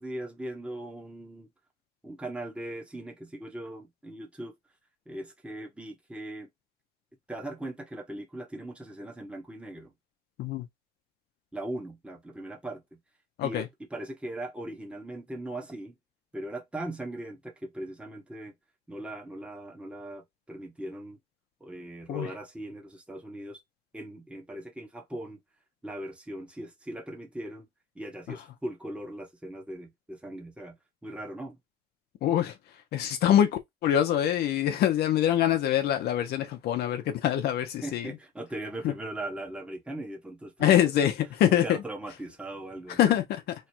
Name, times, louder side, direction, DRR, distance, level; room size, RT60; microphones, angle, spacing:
voice 1, 0.0-1.5 2.0-4.5 5.1-6.5 7.3-9.9 11.5-12.8 13.4-15.9 16.3-18.5 18.9-21.2 21.6-23.6 23.9-25.4 25.8-27.7 27.9-30.8 31.0-31.6 37.8-41.1 41.4-43.2, right 1 dB, 5° right, 1.1 m, -39 dB
voice 2, 32.2-32.5 32.9-38.1 38.8-38.9 40.6-41.8 43.0-43.4, left 11 dB, 70° left, 0.7 m, -24 dB
3.2 x 2.3 x 4.3 m
cardioid pair, 110°, 17 cm